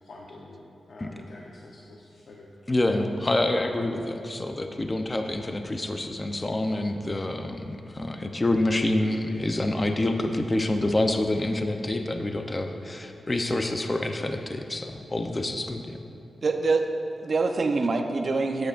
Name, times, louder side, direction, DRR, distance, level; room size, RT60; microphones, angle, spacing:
voice 1, 0.0-2.5, left 2 dB, 70° left, -3 dB, 0.9 m, -47 dB
voice 2, 2.7-16.0, left 1 dB, 25° left, 5 dB, 0.6 m, -27 dB
voice 3, 16.4-16.8 17.2-18.7, right 3 dB, 55° right, 4 dB, 0.7 m, -25 dB
13.0 x 9.1 x 2.5 m, 2.9 s
cardioid pair, 85°, 0 cm